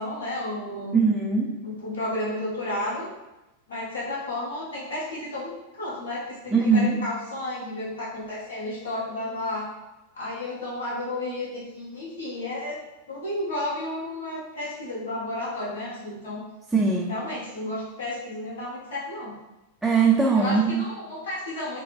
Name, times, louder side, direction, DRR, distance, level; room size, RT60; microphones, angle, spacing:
voice 1, 0.0-1.0 1.6-3.1 3.7-9.6 10.1-12.8 13.1-16.4 17.1-19.3 20.3-21.8, left 1 dB, 65° left, -7 dB, 1.2 m, -32 dB
voice 2, 0.9-1.5 6.5-6.9 16.7-17.1 19.8-20.8, right 4 dB, 5° right, -3 dB, 0.5 m, -20 dB
4.5 x 2.3 x 3.3 m, 0.97 s
figure-of-eight pair, 90°, 0 cm